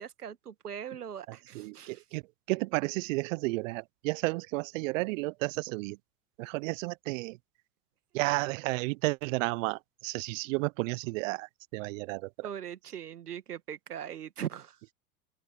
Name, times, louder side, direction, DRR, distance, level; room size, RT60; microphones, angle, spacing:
voice 1, 0.0-2.0 12.4-14.8, right 9 dB, 85° right, 1.9 m, -40 dB
voice 2, 1.3-2.2 2.5-6.0 6.4-7.4 8.1-12.5, right 24 dB, 60° right, 0.7 m, -32 dB
open air
hypercardioid pair, 90°, 45 cm